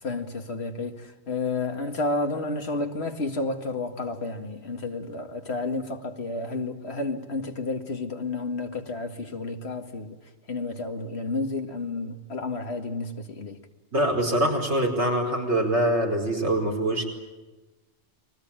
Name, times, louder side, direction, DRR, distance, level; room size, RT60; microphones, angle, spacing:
voice 1, 0.0-10.2 10.5-13.6, left 3 dB, 75° left, 2.3 m, -31 dB
voice 2, 13.9-17.0, right 1 dB, 90° right, 5.2 m, -24 dB
30.0 x 22.0 x 9.0 m
omnidirectional pair, 1.1 m